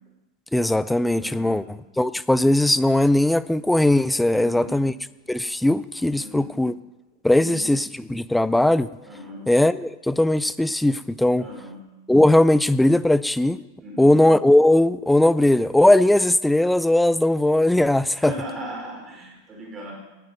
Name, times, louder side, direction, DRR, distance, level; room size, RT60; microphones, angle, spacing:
voice 1, 0.5-1.6 2.0-4.9 5.3-6.7 7.2-8.9 9.5-11.5 12.1-13.6 14.0-18.3, left 1 dB, 5° left, 17 dB, 0.4 m, -19 dB
voice 2, 1.2-1.6 4.3-4.8 6.2-6.6 7.4-7.7 9.1-9.5 11.4-11.8 13.8-14.2 18.1-19.9, equal, 20° right, 0 dB, 4.4 m, -37 dB
18.0 x 9.1 x 5.3 m, 1.1 s
figure-of-eight pair, 90°, 0 cm